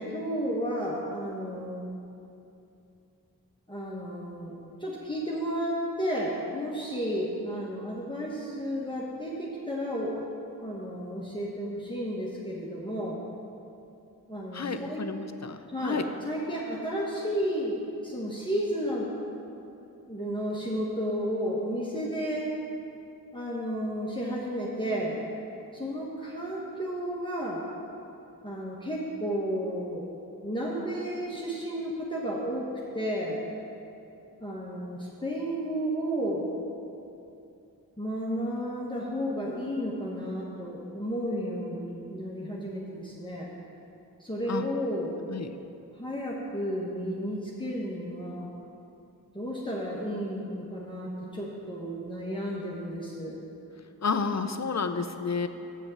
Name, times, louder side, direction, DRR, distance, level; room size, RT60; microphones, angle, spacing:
voice 1, 0.0-1.9 3.7-10.3 10.6-13.2 14.3-15.0 15.7-19.1 20.1-22.5 23.3-25.2 25.7-27.6 28.4-30.1 30.4-32.7 32.9-33.4 34.4-36.5 38.0-43.5 44.2-45.1 45.9-48.5 49.3-53.4, equal, 15° left, -5 dB, 1.3 m, -32 dB
voice 2, 14.5-16.1 44.5-44.6 45.3-45.5 54.0-55.5, left 5 dB, 45° left, 8 dB, 0.6 m, -30 dB
7.7 x 6.3 x 7.4 m, 2.7 s
wide cardioid pair, 55°, 38 cm